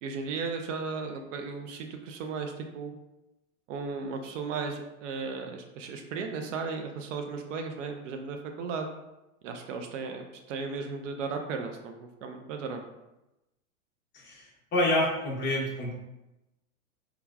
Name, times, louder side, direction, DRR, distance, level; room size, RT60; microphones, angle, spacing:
voice 1, 0.0-2.9 3.7-8.9 9.4-12.8, right 4 dB, 60° right, 4 dB, 0.5 m, -35 dB
voice 2, 14.1-14.5 14.7-15.9, left 1 dB, 25° left, -4 dB, 0.8 m, -27 dB
3.2 x 2.3 x 2.3 m, 0.96 s
hypercardioid pair, 130°, 42 cm